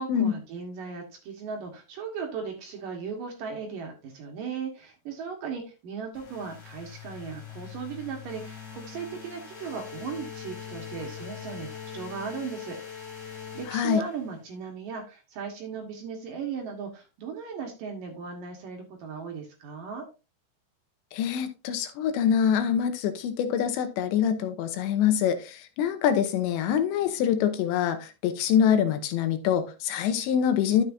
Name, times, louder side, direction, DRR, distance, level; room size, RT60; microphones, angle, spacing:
voice 1, 0.0-13.1 13.5-20.1, right 5 dB, 60° right, 2 dB, 2.7 m, -37 dB
sound 1, 6.1-14.5, left 7 dB, 40° left, 3.4 m, -42 dB
voice 2, 13.7-14.0 21.1-30.8, left 9 dB, 85° left, 9 dB, 3.2 m, -25 dB
11.0 x 7.0 x 2.7 m, 0.29 s
omnidirectional pair, 5.0 m